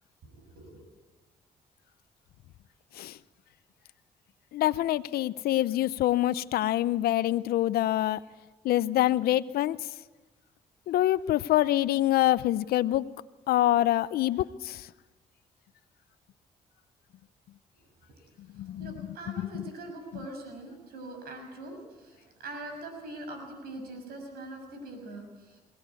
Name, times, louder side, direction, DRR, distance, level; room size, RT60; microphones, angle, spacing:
voice 1, 0.3-0.9 18.5-25.6, right 2 dB, 85° right, 4 dB, 6.4 m, -43 dB
voice 2, 4.5-8.2 8.6-9.8 10.9-13.0 13.5-14.8 18.6-18.9, left 14 dB, 80° left, 16 dB, 0.6 m, -25 dB
22.0 x 17.0 x 8.3 m, 1.2 s
cardioid pair, 70°, 16 cm